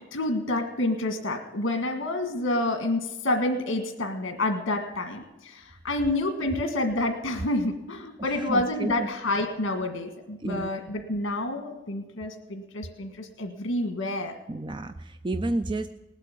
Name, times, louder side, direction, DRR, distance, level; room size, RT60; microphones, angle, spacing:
voice 1, 0.1-14.4, left 2 dB, 80° left, 5 dB, 1.7 m, -28 dB
voice 2, 8.2-9.1 10.4-10.7 14.5-15.9, right 2 dB, 25° right, 10 dB, 0.4 m, -31 dB
19.0 x 8.2 x 8.5 m, 1.1 s
head